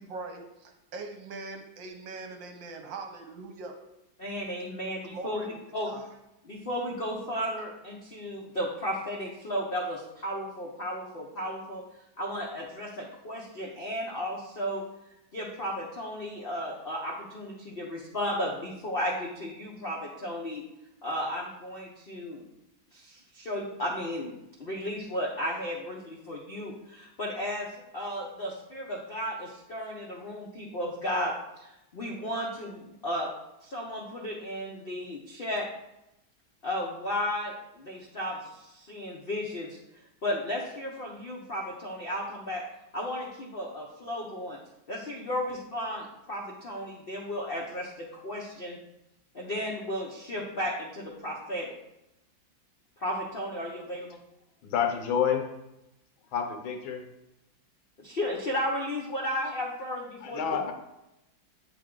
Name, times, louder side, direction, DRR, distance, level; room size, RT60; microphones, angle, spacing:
voice 1, 0.0-3.7 5.1-5.5 5.9-6.1, right 3 dB, 70° right, 4 dB, 1.5 m, -41 dB
voice 2, 4.2-6.0 6.4-11.9 12.2-14.8 15.3-20.6 21.0-22.4 22.9-24.3 24.6-31.3 31.6-33.3 33.6-35.7 36.6-39.8 40.2-42.6 42.9-44.6 44.9-48.8 49.3-51.7 53.0-54.2 58.0-60.6, equal, 65° left, -2 dB, 0.5 m, -34 dB
voice 3, 54.6-55.4 56.3-57.0 60.2-60.7, left 8 dB, 85° left, 4 dB, 1.7 m, -28 dB
8.5 x 3.6 x 3.7 m, 0.90 s
omnidirectional pair, 2.1 m